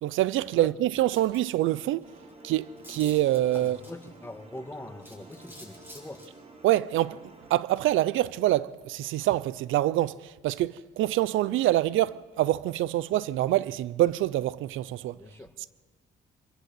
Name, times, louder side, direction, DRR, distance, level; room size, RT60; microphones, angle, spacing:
voice 1, 0.0-2.0 2.4-3.8 6.6-7.2 7.5-15.2, right 14 dB, 85° right, 0.5 m, -25 dB
sound 1, 1.1-1.5 2.0-2.1 2.3-2.4 2.8-4.2 5.0-6.3, equal, 10° right, 5.9 m, -48 dB
sound 2, 2.0-7.6, right 2 dB, 35° right, 3.4 m, -51 dB
voice 2, 3.5-6.2 15.1-15.5, left 1 dB, 10° left, 1.7 m, -43 dB
24.5 x 14.5 x 7.7 m
cardioid pair, 90°, 20 cm